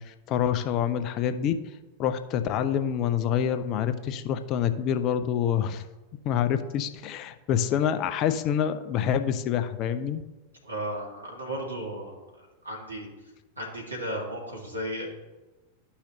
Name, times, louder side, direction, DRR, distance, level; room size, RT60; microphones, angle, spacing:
voice 1, 0.0-1.5 2.0-5.8 6.2-10.2, left 9 dB, 40° left, 10 dB, 0.5 m, -27 dB
voice 2, 10.6-12.1 12.6-13.1 13.6-15.1, right 1 dB, 80° right, -1 dB, 1.7 m, -34 dB
11.5 x 5.7 x 2.8 m, 1.2 s
figure-of-eight pair, 90°, 0 cm